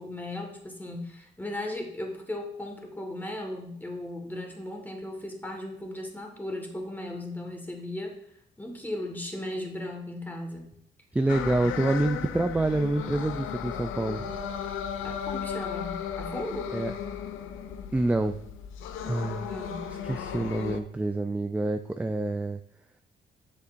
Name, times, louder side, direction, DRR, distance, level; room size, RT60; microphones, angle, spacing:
voice 1, 0.0-8.2 8.6-10.7 11.6-11.8 15.0-16.7 19.5-19.9, left 1 dB, 10° left, 2 dB, 1.7 m, -37 dB
voice 2, 11.1-14.3 16.7-16.9 17.9-18.4 19.1-19.5 20.0-22.6, right 2 dB, 5° right, 8 dB, 0.3 m, -27 dB
sound 1, 11.3-20.8, left 8 dB, 85° left, 0.6 m, -35 dB
7.6 x 6.6 x 2.6 m, 0.69 s
cardioid pair, 90°, 20 cm